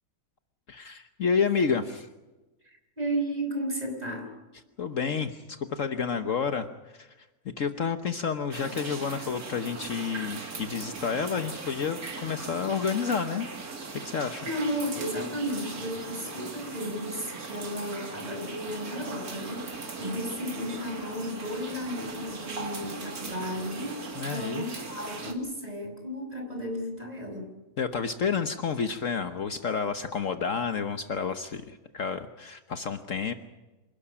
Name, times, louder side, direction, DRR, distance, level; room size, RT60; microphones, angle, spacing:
voice 1, 0.7-2.1 4.8-7.3 7.6-13.5 14.0-14.5 24.1-24.8 27.8-33.3, left 6 dB, 55° left, 9 dB, 1.4 m, -30 dB
voice 2, 2.6-4.3 14.4-27.5, equal, 25° right, 4 dB, 5.0 m, -34 dB
sound 1, 8.5-25.3, right 4 dB, 70° right, 2.9 m, -39 dB
27.5 x 12.0 x 9.9 m, 1.1 s
omnidirectional pair, 1.6 m